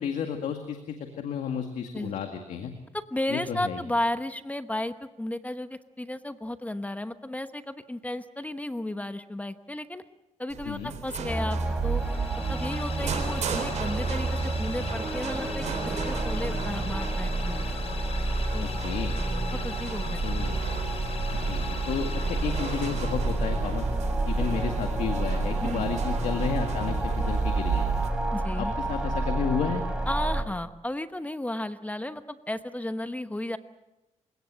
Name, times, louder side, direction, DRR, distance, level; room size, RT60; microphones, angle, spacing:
voice 1, 0.0-2.7 3.3-3.8 10.6-10.9 18.6-19.1 20.2-20.5 21.5-23.9 24.3-27.9 28.6-29.8, left 7 dB, 85° left, 5 dB, 2.0 m, -32 dB
voice 2, 2.9-10.0 10.4-12.0 12.5-17.6 18.5-18.7 19.5-20.2 25.6-25.9 28.3-28.7 30.1-33.6, left 1 dB, 10° left, 10 dB, 1.0 m, -33 dB
sound 1, 10.5-28.1, right 7 dB, 75° right, 4.1 m, -34 dB
sound 2, 11.3-30.4, right 1 dB, 5° right, 3.7 m, -30 dB
sound 3, 11.9-23.7, left 5 dB, 55° left, 4.0 m, -41 dB
27.5 x 17.5 x 7.6 m, 1.0 s
cardioid pair, 85°, 12 cm